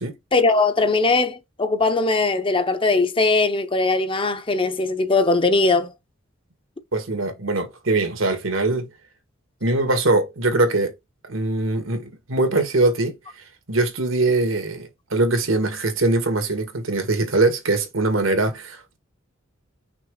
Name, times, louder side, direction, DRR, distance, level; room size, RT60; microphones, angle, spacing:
voice 1, 0.3-5.9, left 3 dB, 25° left, 0.7 m, -20 dB
voice 2, 6.9-8.9 9.6-10.9 11.3-13.1 13.7-19.0, right 2 dB, 80° right, 2.0 m, -22 dB
6.0 x 3.1 x 5.0 m
head